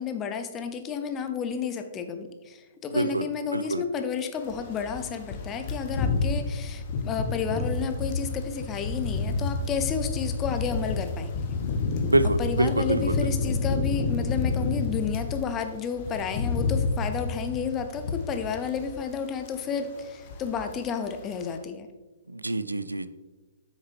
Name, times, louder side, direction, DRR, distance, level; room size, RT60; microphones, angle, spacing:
voice 1, 0.0-11.5 12.4-21.9, left 6 dB, 20° left, 8 dB, 0.7 m, -31 dB
voice 2, 2.9-3.3 3.5-3.8 12.1-13.1 22.3-23.1, right 2 dB, 80° right, 13 dB, 0.4 m, -25 dB
sound 1, 4.4-15.4 15.7-19.1 19.4-19.7 20.0-20.8 21.1-21.3, left 4 dB, 40° left, 1.0 m, -29 dB
8.1 x 6.5 x 3.2 m, 1.2 s
figure-of-eight pair, 120°, 0 cm